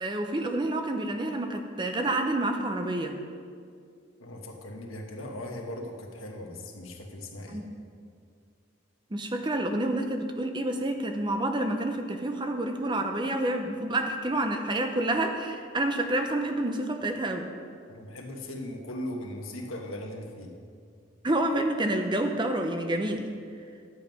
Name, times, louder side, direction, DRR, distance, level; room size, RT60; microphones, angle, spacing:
voice 1, 0.0-3.1 7.5-7.6 9.1-17.5 21.2-23.3, right 1 dB, 20° right, 5 dB, 0.6 m, -28 dB
voice 2, 4.2-7.6 17.9-20.6, left 1 dB, 85° left, 2 dB, 1.4 m, -39 dB
11.5 x 7.6 x 5.3 m, 2.3 s
head